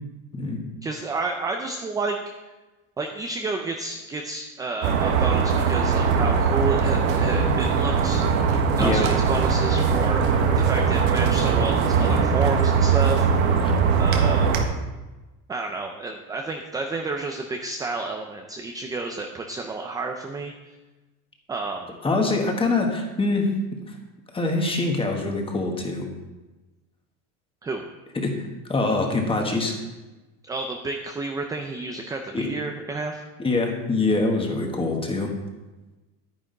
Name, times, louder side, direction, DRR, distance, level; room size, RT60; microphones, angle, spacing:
voice 1, 0.8-2.2 3.0-8.2 8.8-10.2 10.6-13.3 14.0-14.5 15.5-20.5 21.5-21.9 27.6-27.8 30.4-33.2, right 3 dB, 10° right, 3 dB, 0.4 m, -30 dB
sound 1, 4.8-14.6, right 5 dB, 80° right, 1.4 m, -21 dB
voice 2, 22.0-23.5 23.9-24.0 24.3-26.1 28.2-29.7 32.3-32.5 33.4-35.3, left 3 dB, 15° left, 2 dB, 1.4 m, -24 dB
10.0 x 10.0 x 3.9 m, 1.1 s
cardioid pair, 145°, 40 cm